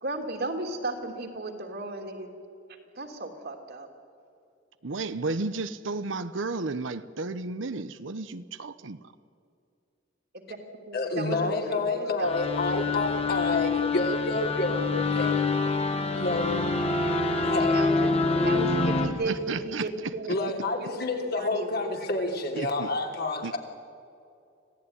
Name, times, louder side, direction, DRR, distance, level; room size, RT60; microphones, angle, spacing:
voice 1, 0.0-2.3 2.9-3.9 10.5-10.6 10.9-12.4 12.6-13.0 17.6-21.0 21.3-21.7 22.1-22.4, right 2 dB, 55° right, 3 dB, 3.1 m, -35 dB
voice 2, 4.8-9.0 19.2-19.9 22.5-22.9 23.4-23.5, right 3 dB, 75° right, 12 dB, 0.9 m, -33 dB
voice 3, 10.9-15.4 16.2-16.6 17.4-17.7 20.3-23.6, left 2 dB, 55° left, 2 dB, 3.2 m, -29 dB
sound 1, 12.2-19.1, left 3 dB, 30° left, 2.2 m, -26 dB
26.0 x 16.5 x 9.8 m, 2.5 s
head